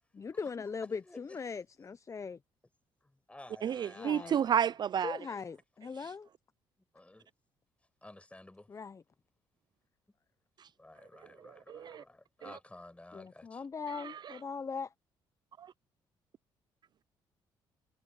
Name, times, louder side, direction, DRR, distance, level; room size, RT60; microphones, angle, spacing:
voice 1, 0.1-2.4 4.0-4.4 5.0-6.3 8.7-9.0 13.1-14.9, left 5 dB, 30° left, 0.7 m, -40 dB
voice 2, 0.8-1.4 3.0-4.6 6.9-7.3 8.0-8.7 10.8-13.6, left 1 dB, 15° left, 5.6 m, -53 dB
voice 3, 3.6-5.2 6.0-6.1 10.6-10.7 11.4-12.0 12.4-12.6 13.9-14.4 15.6-15.7, right 8 dB, 50° right, 0.4 m, -32 dB
supercardioid pair, 70°, 10 cm